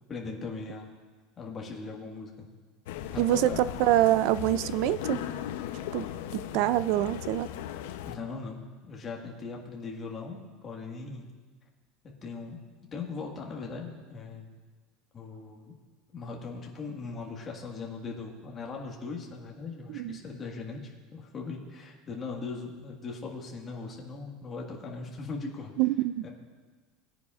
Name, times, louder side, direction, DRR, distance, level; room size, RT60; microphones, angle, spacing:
voice 1, 0.1-0.9 1.4-2.5 3.1-3.6 8.0-11.3 12.2-12.6 12.9-14.5 15.1-15.7 16.1-25.7 26.2-26.3, left 4 dB, 20° left, -1 dB, 1.6 m, -39 dB
sound 1, 2.9-8.2, left 11 dB, 80° left, 0.6 m, -37 dB
voice 2, 3.2-5.2 5.9-6.1 6.3-7.5 19.9-20.2 25.8-26.2, right 14 dB, 55° right, 16 dB, 0.4 m, -25 dB
20.0 x 9.7 x 2.4 m, 1.4 s
supercardioid pair, 160°, 0 cm